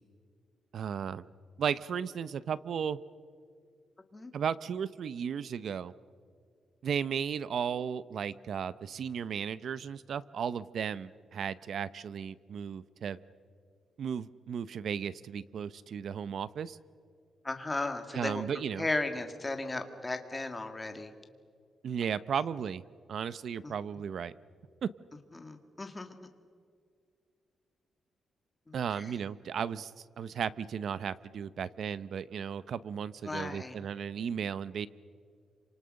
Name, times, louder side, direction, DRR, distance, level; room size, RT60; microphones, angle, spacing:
voice 1, 0.7-1.3 1.6-3.0 4.3-5.9 6.8-13.2 14.0-16.8 18.1-18.9 21.8-22.8 23.1-24.3 24.8-24.9 28.7-29.9 30.2-34.9, right 7 dB, 55° right, 17 dB, 0.7 m, -35 dB
voice 2, 17.4-18.4 18.7-21.1 23.6-23.7 25.3-26.2 28.7-29.2 33.2-33.8, left 2 dB, 15° left, 6 dB, 1.7 m, -36 dB
28.0 x 26.0 x 6.5 m, 2.2 s
wide cardioid pair, 165°, 0 cm